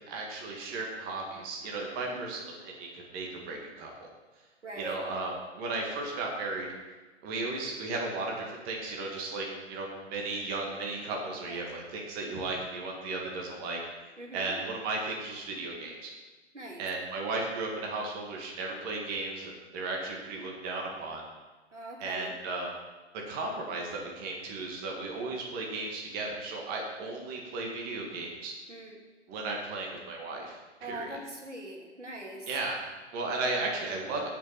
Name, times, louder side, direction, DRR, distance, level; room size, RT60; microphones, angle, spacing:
voice 1, 0.1-4.1 4.8-6.7 7.2-13.8 14.3-16.1 16.8-21.2 22.0-22.7 23.3-28.5 29.3-31.2 32.5-34.3, right 3 dB, 25° right, -1 dB, 2.0 m, -35 dB
voice 2, 4.6-5.0 11.5-11.7 14.2-14.5 16.5-16.8 21.7-22.3 28.7-29.0 30.8-32.5, right 1 dB, 85° right, 0 dB, 2.5 m, -42 dB
16.0 x 6.0 x 4.3 m, 1.2 s
figure-of-eight pair, 125°, 35 cm